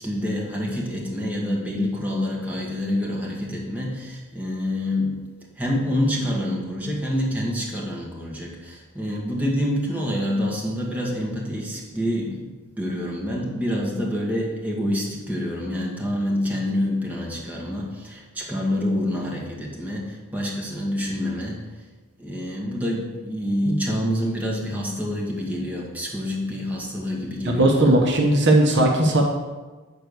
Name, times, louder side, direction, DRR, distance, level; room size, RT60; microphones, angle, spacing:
voice 1, 0.0-5.2 5.6-12.5 12.8-21.6 22.2-28.0, left 1 dB, 5° right, -3 dB, 1.7 m, -27 dB
voice 2, 27.4-29.2, right 1 dB, 55° right, 1 dB, 1.1 m, -18 dB
8.8 x 4.5 x 6.6 m, 1.3 s
head